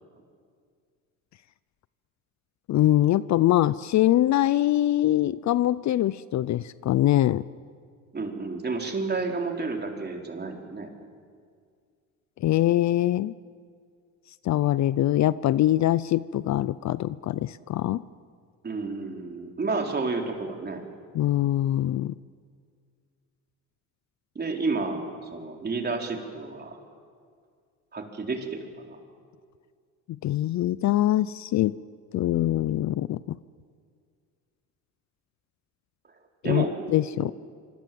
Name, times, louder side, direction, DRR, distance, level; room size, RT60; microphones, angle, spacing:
voice 1, 2.7-7.4 12.4-13.3 14.4-18.0 21.1-22.1 30.2-31.8 32.1-33.4 36.4-37.3, left 13 dB, 50° left, 18 dB, 0.6 m, -23 dB
voice 2, 8.1-10.9 18.6-20.9 24.4-26.8 27.9-29.0 36.4-36.7 37.2-37.3, right 3 dB, 30° right, 2 dB, 4.0 m, -31 dB
25.5 x 25.5 x 7.7 m, 2.1 s
cardioid pair, 100°, 35 cm